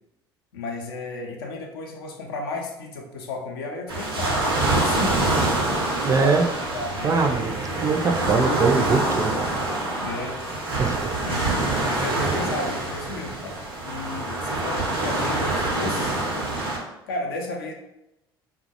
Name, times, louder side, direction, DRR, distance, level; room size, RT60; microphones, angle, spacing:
voice 1, 0.5-5.6 6.0-7.4 10.0-10.4 11.1-11.5 11.8-16.1 17.1-17.7, left 2 dB, 75° left, 1 dB, 0.4 m, -33 dB
sound 1, 3.9-16.8, right 2 dB, 85° right, 0.6 m, -25 dB
voice 2, 6.0-6.5 7.0-7.5 7.8-9.3 10.8-11.0, right 4 dB, 25° right, 4 dB, 0.3 m, -22 dB
2.2 x 2.1 x 2.8 m, 0.90 s
hypercardioid pair, 60°, 12 cm